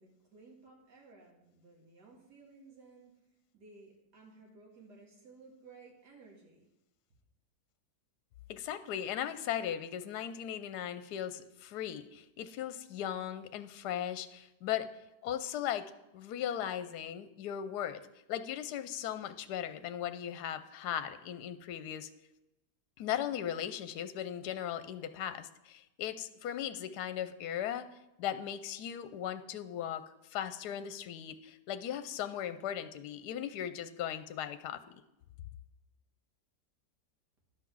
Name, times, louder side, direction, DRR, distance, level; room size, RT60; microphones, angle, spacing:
voice 1, 0.0-3.1 3.5-6.7, right 3 dB, 80° right, -1 dB, 2.5 m, -57 dB
voice 2, 8.5-14.9 15.2-15.8 16.1-18.0 18.3-22.1 23.0-27.9 28.2-30.0 30.3-34.8, left 10 dB, 75° left, 12 dB, 1.2 m, -37 dB
11.5 x 5.8 x 6.1 m, 0.92 s
omnidirectional pair, 1.8 m